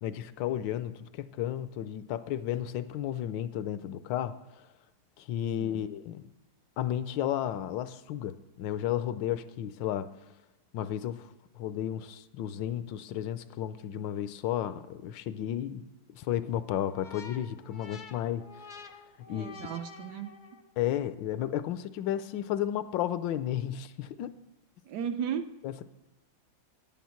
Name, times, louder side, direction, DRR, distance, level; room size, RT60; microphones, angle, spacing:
voice 1, 0.0-4.4 5.2-6.3 6.8-10.1 10.7-15.9 16.1-18.8 19.3-19.6 20.8-24.4 25.6-25.8, left 11 dB, 80° left, 13 dB, 1.3 m, -33 dB
sound 1, 16.9-20.8, left 3 dB, 55° left, 0.5 m, -49 dB
voice 2, 19.3-20.3 24.8-25.5, right 8 dB, 70° right, 9 dB, 1.1 m, -35 dB
10.0 x 9.3 x 5.8 m, 1.1 s
omnidirectional pair, 2.1 m